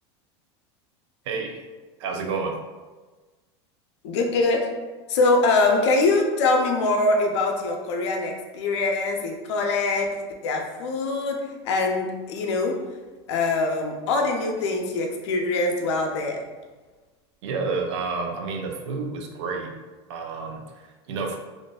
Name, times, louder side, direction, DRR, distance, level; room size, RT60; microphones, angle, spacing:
voice 1, 1.2-1.6 2.0-2.6 17.4-19.8 20.1-21.4, right 4 dB, 75° right, 3 dB, 0.4 m, -30 dB
voice 2, 4.0-4.7 5.1-12.8 13.3-16.4, left 3 dB, 80° left, 2 dB, 0.5 m, -23 dB
2.5 x 2.4 x 2.2 m, 1.3 s
supercardioid pair, 115°, 14 cm